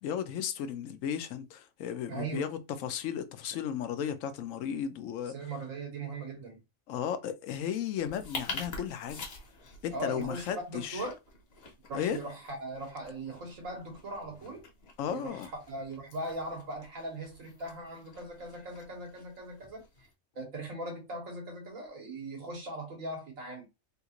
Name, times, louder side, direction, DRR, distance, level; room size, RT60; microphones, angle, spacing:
voice 1, 0.0-5.3 6.9-9.3 9.8-11.0 11.9-12.2 15.0-15.5, left 9 dB, 80° left, 0.9 m, -34 dB
voice 2, 2.1-2.4 5.3-6.6 9.9-11.1 11.9-14.7 15.1-20.1 20.3-23.7, right 2 dB, 85° right, 1.7 m, -39 dB
sound 1, 8.0-20.1, left 3 dB, 50° left, 1.1 m, -47 dB
3.5 x 2.4 x 2.9 m
omnidirectional pair, 1.3 m